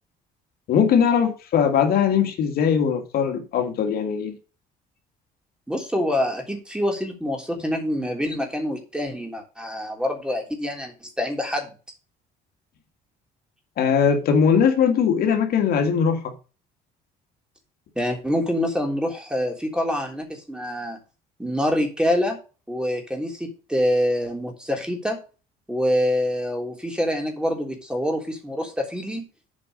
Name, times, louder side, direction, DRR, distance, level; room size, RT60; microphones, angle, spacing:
voice 1, 0.7-4.4 13.8-16.3, left 7 dB, 65° left, 2.0 m, -20 dB
voice 2, 5.7-11.7 17.9-21.0 21.4-22.4 22.7-25.2 25.7-29.3, equal, 5° right, 3.4 m, -26 dB
8.6 x 5.1 x 6.5 m
cardioid pair, 110°, 17 cm